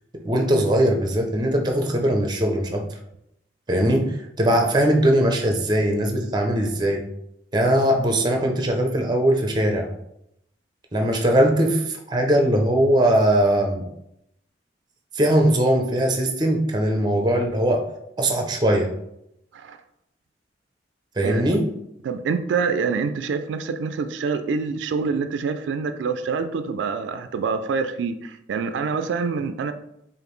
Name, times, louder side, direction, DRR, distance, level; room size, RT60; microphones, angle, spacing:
voice 1, 0.2-2.9 3.7-7.0 7.5-9.9 10.9-13.8 15.1-17.9 18.2-18.9 21.2-21.7, right 1 dB, 25° right, 3 dB, 0.5 m, -20 dB
voice 2, 22.0-29.7, right 5 dB, 85° right, 9 dB, 0.3 m, -26 dB
4.9 x 2.5 x 3.1 m, 0.79 s
head